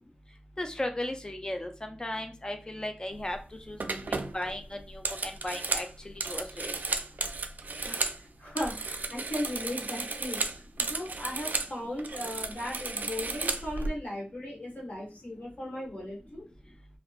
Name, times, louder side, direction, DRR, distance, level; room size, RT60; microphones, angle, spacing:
voice 1, 0.6-3.4 3.7-6.8, left 1 dB, 25° left, 5 dB, 0.5 m, -36 dB
sound 1, 3.2-3.4 3.8-8.2 8.5-11.7 12.0-13.9, right 3 dB, 60° right, 0.3 m, -34 dB
voice 2, 7.8-10.4 10.8-16.4, left 1 dB, 50° left, -3 dB, 1.3 m, -37 dB
2.8 x 2.1 x 2.4 m, 0.32 s
wide cardioid pair, 60°, 3 cm